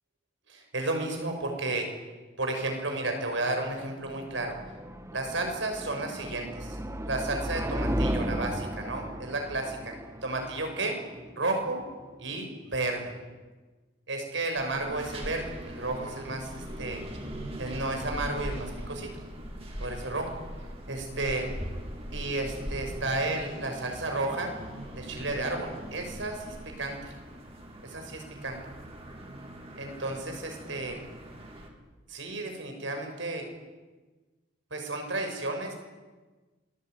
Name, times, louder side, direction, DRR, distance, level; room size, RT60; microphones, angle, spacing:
voice 1, 0.5-1.9 2.4-4.6 5.1-6.8 7.1-9.9 10.2-11.0 11.4-11.8 12.2-13.1 14.1-17.0 17.6-19.1 19.8-20.4 20.9-21.5 22.1-24.5 24.9-27.1 27.8-28.6 29.8-31.0 32.1-33.5 34.7-35.7, right 2 dB, 85° right, 3 dB, 6.3 m, -32 dB
sound 1, 3.4-12.4, equal, 15° right, 1.3 m, -35 dB
sound 2, 14.5-31.7, equal, 30° right, 3.9 m, -41 dB
27.0 x 20.0 x 9.3 m, 1.3 s
head